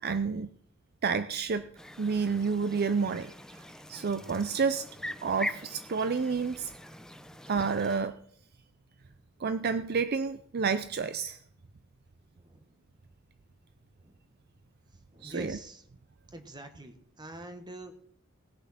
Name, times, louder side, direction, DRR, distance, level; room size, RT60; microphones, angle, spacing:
voice 1, 0.0-0.5 1.0-1.7 2.0-4.9 5.2-6.7 7.5-8.2 9.4-11.4 15.2-15.6, right 5 dB, 50° right, 12 dB, 0.5 m, -30 dB
sound 1, 1.8-8.0, left 1 dB, 5° left, 0.6 m, -42 dB
voice 2, 12.3-12.7 14.0-14.2 14.9-15.8 16.3-18.0, right 1 dB, 20° right, 6 dB, 1.5 m, -46 dB
18.5 x 6.9 x 5.8 m, 0.63 s
head